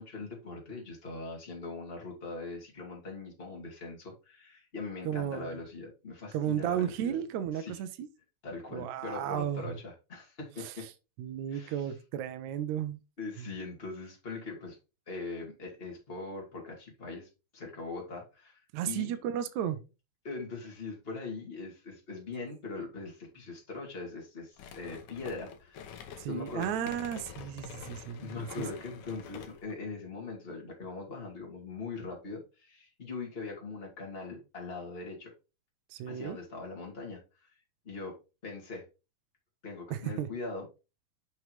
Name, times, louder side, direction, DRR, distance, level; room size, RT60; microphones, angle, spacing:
voice 1, 0.0-7.2 7.5-7.8 8.4-10.9 11.5-11.9 13.2-14.8 15.1-19.2 20.2-26.9 28.2-35.3 36.1-37.5 37.8-38.2 38.4-38.8 39.6-40.7, left 3 dB, 20° left, 2.3 m, -41 dB
voice 2, 5.0-5.6 6.3-8.1 8.7-9.8 10.6-10.7 11.2-13.0 13.4-13.5 18.7-19.8 26.2-28.7 35.9-36.4 39.9-40.3, right 10 dB, 75° right, 1.7 m, -34 dB
sound 1, 24.6-29.7, left 7 dB, 70° left, 2.0 m, -47 dB
6.4 x 6.4 x 3.1 m
omnidirectional pair, 4.1 m